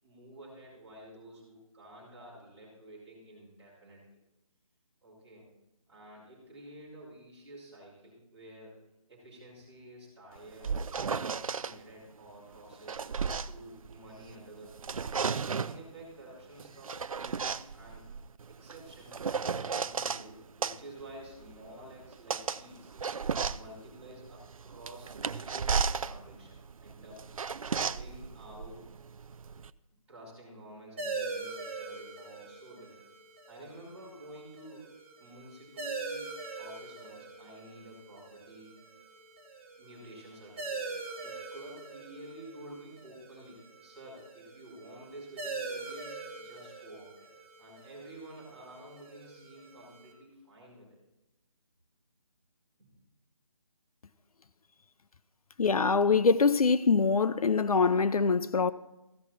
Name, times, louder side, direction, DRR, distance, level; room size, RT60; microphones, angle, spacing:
voice 1, 0.0-4.2 5.0-5.5 5.9-8.7 9.1-15.1 15.6-18.0 18.5-19.1 19.4-22.9 23.5-27.3 27.8-28.9 30.1-33.1 33.5-38.7 39.8-47.3 47.6-51.0 52.8-52.9, right 1 dB, 5° right, 3.9 m, -50 dB
sound 1, 10.4-11.7 12.6-14.4 14.7-15.8 16.6-20.2 20.6-29.7, right 5 dB, 70° right, 0.5 m, -34 dB
sound 2, 31.0-50.1, right 3 dB, 20° right, 1.2 m, -43 dB
voice 2, 55.6-58.7, left 4 dB, 80° left, 0.6 m, -24 dB
15.0 x 6.0 x 4.2 m
figure-of-eight pair, 170°, 18 cm